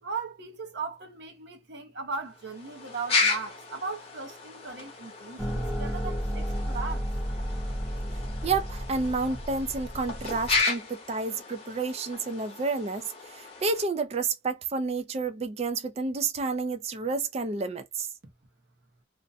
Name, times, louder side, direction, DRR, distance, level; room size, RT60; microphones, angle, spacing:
voice 1, 0.0-7.1, right 4 dB, 65° right, 0.8 m, -38 dB
sound 1, 2.3-13.8, left 4 dB, 35° left, 0.9 m, -34 dB
sound 2, 5.4-10.6, equal, ahead, 0.7 m, -33 dB
voice 2, 8.4-18.1, right 4 dB, 35° right, 0.4 m, -30 dB
2.5 x 2.1 x 2.6 m
head